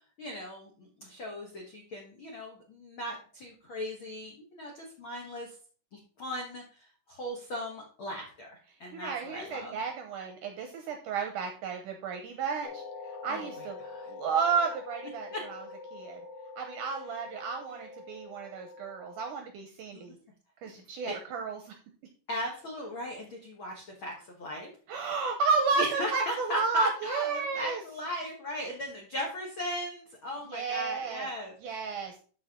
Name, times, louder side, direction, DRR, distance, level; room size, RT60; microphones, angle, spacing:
voice 1, 0.2-5.5 5.9-9.7 13.3-14.1 15.3-15.4 19.9-20.1 20.6-20.7 21.0-21.2 22.3-24.7 25.8-31.9, left 1 dB, 85° left, 0 dB, 1.1 m, -38 dB
voice 2, 8.9-13.8 14.1-15.6 15.9-16.2 16.6-20.2 20.6-21.7 24.9-27.8 30.5-31.3 31.6-32.2, right 5 dB, 75° right, 4 dB, 1.9 m, -32 dB
sound 1, 12.6-19.2, left 3 dB, 65° left, 2.5 m, -45 dB
13.0 x 4.3 x 3.7 m, 0.41 s
omnidirectional pair, 4.7 m